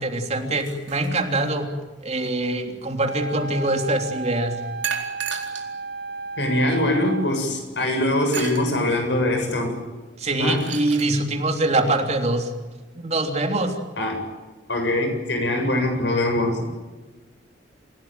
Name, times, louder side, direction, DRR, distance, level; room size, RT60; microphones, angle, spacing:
voice 1, 0.0-1.7 2.0-4.6 10.2-12.5 13.0-13.7, right 2 dB, 40° right, 4 dB, 3.3 m, -24 dB
sound 1, 0.6-1.7 4.8-5.7 6.4-6.5 8.3-8.7 10.3-11.1, right 7 dB, 90° right, 4.3 m, -32 dB
Wind instrument woodwind instrument, 3.0-7.4, right 3 dB, 65° right, 2.3 m, -34 dB
voice 2, 6.4-9.7 10.4-10.6 14.0-14.2 14.7-16.7, left 1 dB, 75° left, 4 dB, 7.5 m, -23 dB
28.0 x 17.0 x 9.1 m, 1.2 s
head